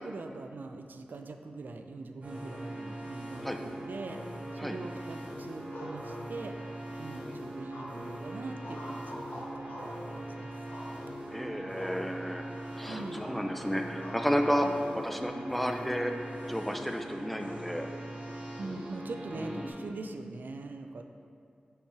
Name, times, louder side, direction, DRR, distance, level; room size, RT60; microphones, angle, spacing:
voice 1, 0.0-4.2 4.5-6.6 7.0-10.5 12.9-13.3 14.6-14.8 18.6-21.0, right 3 dB, 75° right, 6 dB, 0.4 m, -42 dB
sound 1, 2.2-19.7, right 1 dB, 50° right, 1.4 m, -41 dB
sound 2, 5.7-6.7 7.7-8.2 8.6-10.0 10.7-11.3 11.7-12.0 12.3-12.5 12.8-13.4 14.0-14.2 14.8-15.6, left 1 dB, 75° left, 1.3 m, -45 dB
voice 2, 11.3-12.4 12.7-14.7 15.0-16.1 16.5-17.9 19.3-19.7, equal, 5° left, 4 dB, 0.5 m, -32 dB
5.6 x 4.4 x 4.8 m, 2.3 s
wide cardioid pair, 70°, 3 cm